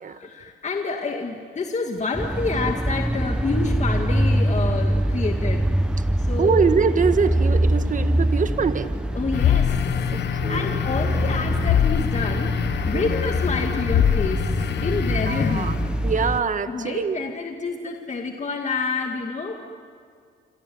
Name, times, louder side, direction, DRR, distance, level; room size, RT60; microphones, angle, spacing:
voice 1, 0.1-5.7 6.2-6.6 9.1-9.8 10.5-15.8 16.7-19.6, left 4 dB, 35° left, 3 dB, 2.1 m, -28 dB
sound 1, 2.1-16.4, right 1 dB, 5° right, 0.9 m, -24 dB
voice 2, 6.4-8.9 10.1-10.8 12.9-13.0 15.3-15.7 16.0-17.2, right 5 dB, 40° right, 10 dB, 1.5 m, -23 dB
sound 2, 9.3-16.0, left 9 dB, 60° left, 1.2 m, -24 dB
28.0 x 26.0 x 7.9 m, 2.1 s
cardioid pair, 90°, 20 cm